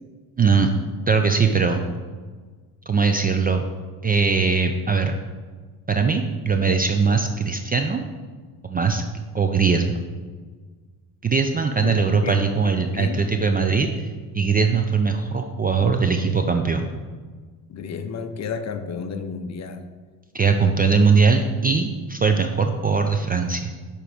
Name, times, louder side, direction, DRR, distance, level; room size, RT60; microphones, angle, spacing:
voice 1, 0.4-0.7 1.1-1.9 2.9-3.6 4.0-5.2 5.9-8.1 8.6-9.0 9.3-10.0 11.2-14.1 14.3-16.9 20.3-23.7, right 5 dB, 20° right, 6 dB, 0.4 m, -20 dB
voice 2, 11.8-12.4 12.9-13.2 17.7-19.9, left 6 dB, 35° left, 9 dB, 0.7 m, -31 dB
6.9 x 4.5 x 4.9 m, 1.5 s
supercardioid pair, 75°, 47 cm